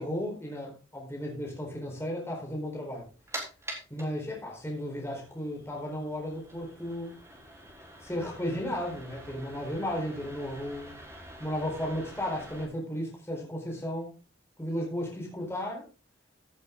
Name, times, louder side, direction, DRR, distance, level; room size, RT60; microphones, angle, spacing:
voice 1, 0.0-3.1 3.9-7.1 8.0-11.0 11.4-14.1 14.6-15.8, equal, 15° left, -2 dB, 4.3 m, -34 dB
sound 1, 2.9-12.6, right 1 dB, 15° right, 3.7 m, -46 dB
16.0 x 8.0 x 3.8 m, 0.32 s
head